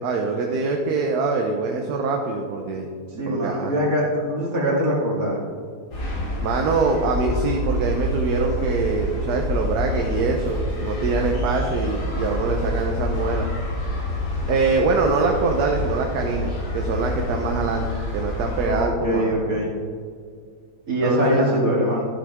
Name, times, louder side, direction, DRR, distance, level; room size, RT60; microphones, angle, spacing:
voice 1, 0.0-2.9 3.3-3.7 6.4-13.5 14.5-17.9 18.1-19.3 21.0-21.6, right 4 dB, 75° right, 2 dB, 1.3 m, -24 dB
voice 2, 3.1-5.4 11.2-11.7 14.3-14.5 18.6-19.7 20.9-22.0, equal, 60° right, -4 dB, 2.8 m, -23 dB
sound 1, 5.9-18.7, left 1 dB, 80° left, 2.9 m, -27 dB
12.0 x 7.8 x 3.6 m, 2.1 s
omnidirectional pair, 1.7 m